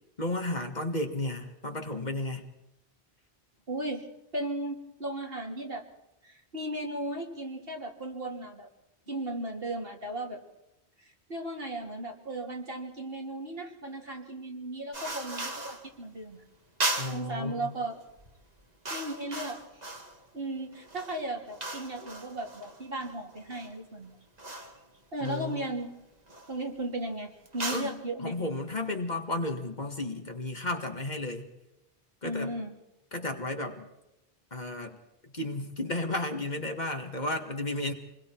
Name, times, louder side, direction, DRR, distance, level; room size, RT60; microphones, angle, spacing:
voice 1, 0.2-2.4 17.0-17.7 25.2-25.6 27.7-31.5 32.2-32.5 33.1-33.9 34.5-35.0 35.3-37.9, left 2 dB, 45° left, 4 dB, 2.0 m, -33 dB
voice 2, 3.7-4.0 4.3-5.8 6.2-8.7 9.1-10.4 11.3-16.4 17.1-18.0 18.9-19.6 20.3-24.1 25.1-25.9 26.5-28.3 32.2-32.7, right 1 dB, 60° right, 0 dB, 3.4 m, -36 dB
sound 1, 14.9-15.9 16.8-17.3 18.1-18.3 18.6-20.3 20.7-23.7 24.4-24.8 25.2-25.8 26.3-26.6 27.5-28.0, right 2 dB, 40° right, 2.2 m, -37 dB
27.0 x 21.0 x 4.6 m, 0.89 s
omnidirectional pair, 1.1 m